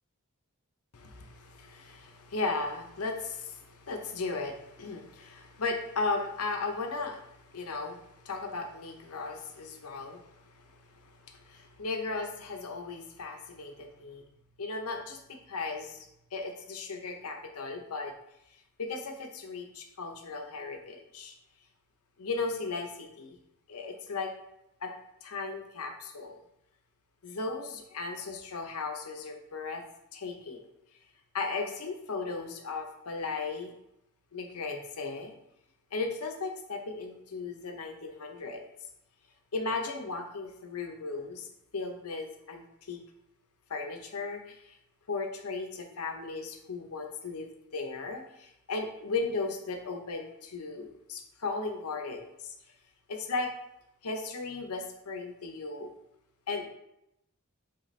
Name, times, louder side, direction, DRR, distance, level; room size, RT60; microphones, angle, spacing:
voice 1, 0.9-14.2 14.6-18.1 18.8-21.3 22.2-23.4 23.7-24.3 24.8-24.9 25.2-26.4 27.2-29.8 30.1-30.6 31.3-33.7 34.3-35.3 35.9-38.6 39.5-41.5 41.7-43.0 43.7-44.8 45.1-52.5 53.1-53.5 54.0-55.9 56.5-56.7, left 3 dB, 75° left, 4 dB, 0.7 m, -36 dB
4.0 x 3.8 x 3.2 m, 0.82 s
head